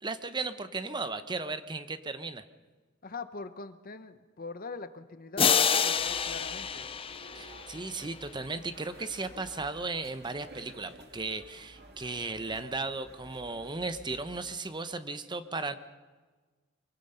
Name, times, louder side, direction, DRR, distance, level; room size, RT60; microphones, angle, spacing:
voice 1, 0.0-2.4 7.3-15.8, right 3 dB, 20° right, 11 dB, 0.9 m, -36 dB
voice 2, 3.0-6.9, left 3 dB, 45° left, 10 dB, 1.1 m, -42 dB
sound 1, 5.4-8.1, left 7 dB, 30° left, 0.6 m, -28 dB
sound 2, 5.9-14.5, right 1 dB, 55° right, 2.3 m, -52 dB
24.0 x 23.0 x 5.7 m, 1.4 s
head